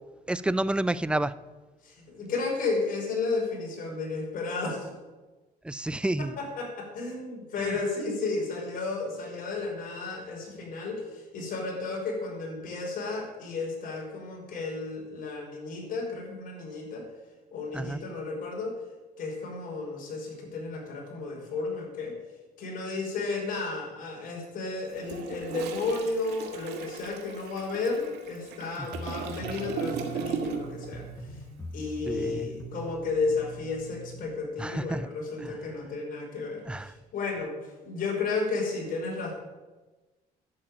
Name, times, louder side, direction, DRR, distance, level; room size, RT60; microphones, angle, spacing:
voice 1, 0.3-1.3 5.6-6.3 7.6-7.8 17.7-18.0 28.8-28.9 32.1-32.5 34.6-35.1 35.4-35.5 36.7-36.9, right 1 dB, 5° right, 15 dB, 0.5 m, -29 dB
voice 2, 1.8-4.9 6.2-17.1 17.5-18.8 19.2-22.2 22.6-31.4 31.7-39.3, left 3 dB, 55° left, -1 dB, 5.4 m, -33 dB
Toilet flush, 24.9-30.9 31.1-31.4, right 6 dB, 80° right, 1.9 m, -37 dB
sound 1, 28.9-34.2, right 2 dB, 15° left, 1.5 m, -42 dB
11.5 x 7.6 x 8.8 m, 1.2 s
cardioid pair, 110°, 17 cm